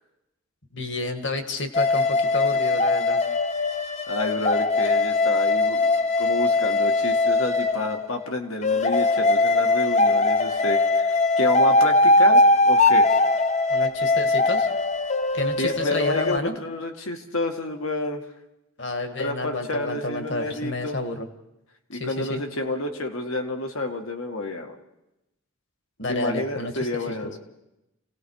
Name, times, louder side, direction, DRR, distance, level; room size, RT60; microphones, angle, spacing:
voice 1, 0.7-3.2 13.7-14.7 15.3-16.6 18.8-21.3 21.9-22.4 26.0-27.1, left 2 dB, 55° left, 6 dB, 1.9 m, -30 dB
sound 1, 1.7-8.1 8.6-16.4, left 2 dB, 35° left, 0.7 m, -21 dB
voice 2, 4.1-5.9 6.2-13.1 15.6-18.2 19.2-21.0 21.9-24.8 26.1-27.4, left 1 dB, 85° left, 5 dB, 2.0 m, -29 dB
29.5 x 18.0 x 4.8 m, 0.90 s
head